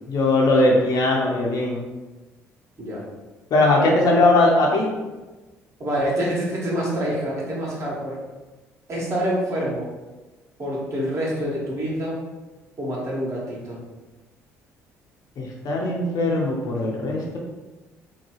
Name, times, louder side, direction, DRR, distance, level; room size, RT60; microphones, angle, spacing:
voice 1, 0.1-1.8 3.5-4.9 15.4-17.4, left 2 dB, 55° left, -1 dB, 0.7 m, -19 dB
voice 2, 5.8-8.2 8.9-9.9 10.6-12.2 12.8-13.8, equal, 40° right, -5 dB, 1.2 m, -26 dB
2.8 x 2.2 x 2.9 m, 1.2 s
hypercardioid pair, 55°, 7 cm